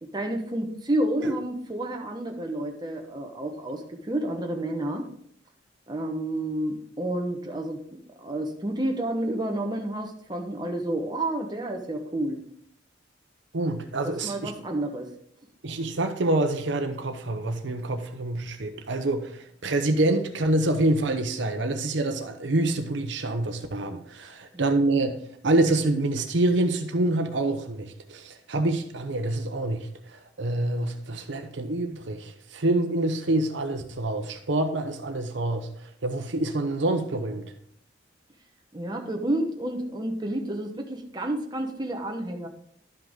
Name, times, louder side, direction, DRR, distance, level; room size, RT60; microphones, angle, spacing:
voice 1, 0.0-5.1 5.9-12.4 14.0-15.1 38.7-42.5, right 1 dB, 20° right, 1.0 m, -30 dB
voice 2, 13.5-14.5 15.6-25.2 25.4-35.7 36.0-37.4, right 2 dB, 70° right, 0.8 m, -26 dB
11.5 x 5.8 x 3.7 m
head